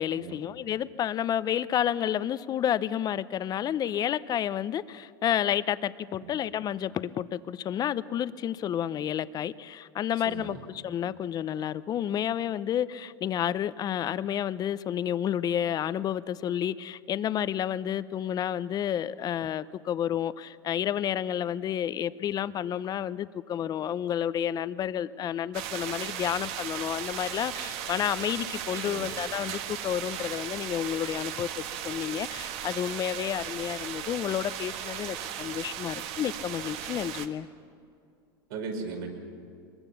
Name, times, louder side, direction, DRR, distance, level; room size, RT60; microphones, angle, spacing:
voice 1, 0.0-10.6 10.8-37.5, left 10 dB, 30° left, 16 dB, 0.7 m, -30 dB
voice 2, 10.2-10.6 28.8-29.1 38.5-39.1, right 4 dB, 70° right, 2 dB, 5.1 m, -37 dB
sound 1, 25.5-37.3, right 9 dB, 55° right, 1.5 m, -37 dB
23.0 x 21.5 x 7.0 m, 2.5 s
supercardioid pair, 115°, 13 cm